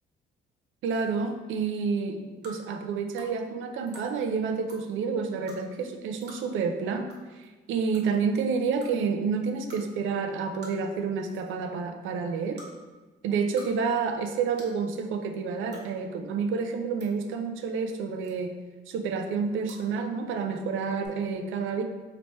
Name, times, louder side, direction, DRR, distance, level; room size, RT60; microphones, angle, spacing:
voice 1, 0.8-7.1 7.3-12.6 13.2-18.6 18.9-21.8, right 5 dB, 80° right, 5 dB, 0.5 m, -29 dB
sound 1, 2.4-2.6 3.2-3.3 3.9-4.1 4.6-4.8 5.5-5.6 6.2-6.4 7.1-7.2 7.4-7.5 7.9-8.2 8.8-8.9 9.7-9.8 10.6-10.9 11.2-11.5 12.5-12.7 13.3-13.7 14.0-14.1 14.6-14.8 15.7-15.8 16.7-17.1 18.2-18.6 19.6-19.8 21.0-21.1, right 2 dB, 60° right, 1.1 m, -47 dB
3.1 x 2.9 x 4.4 m, 1.2 s
cardioid pair, 90°, 20 cm